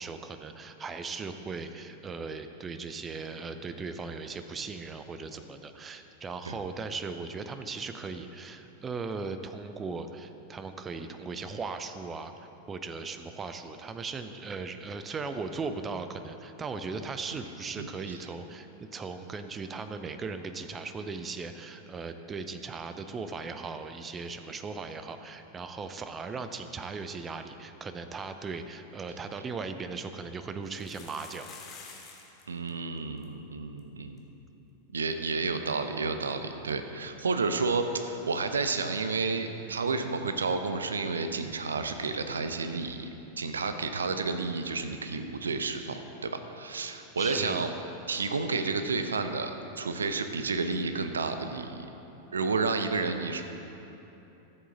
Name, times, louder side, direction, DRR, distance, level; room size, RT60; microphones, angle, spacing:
voice 1, 0.0-31.5 47.2-47.6, right 4 dB, 20° right, 8 dB, 0.6 m, -38 dB
sound 1, 29.4-29.5 30.7-32.4 32.7-32.8 33.0-33.2 33.8-33.9 34.2-34.3 36.3-36.4, left 5 dB, 30° left, 1.3 m, -48 dB
voice 2, 32.5-34.2 34.9-43.1 43.4-47.7 48.1-51.9 52.3-53.4, right 4 dB, 70° right, 8 dB, 0.6 m, -31 dB
13.5 x 7.7 x 4.0 m, 3.0 s
figure-of-eight pair, 90°, 0 cm